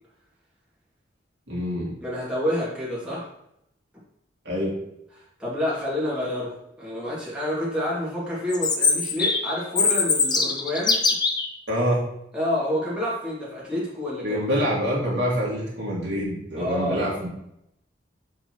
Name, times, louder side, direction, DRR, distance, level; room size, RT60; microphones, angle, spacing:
voice 1, 1.5-1.9 4.4-4.7 11.7-12.0 14.2-17.3, equal, 65° right, -5 dB, 2.3 m, -26 dB
voice 2, 2.0-3.3 5.4-6.5 6.8-11.0 12.3-14.6 16.6-17.2, left 1 dB, 5° right, -8 dB, 2.4 m, -28 dB
Chirp tweet, 8.5-11.5, left 4 dB, 20° left, 0.6 m, -22 dB
6.8 x 5.4 x 3.1 m, 0.79 s
head